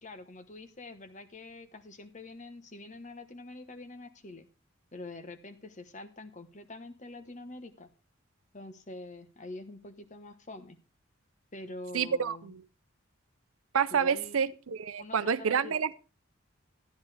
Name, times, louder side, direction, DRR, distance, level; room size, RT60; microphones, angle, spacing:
voice 1, 0.0-4.5 4.9-7.9 8.5-10.8 11.5-12.6 13.9-14.4 15.0-15.7, left 2 dB, 35° left, 1.1 m, -45 dB
voice 2, 11.9-12.6 13.7-15.9, right 7 dB, 85° right, 0.6 m, -28 dB
13.0 x 10.5 x 3.3 m
head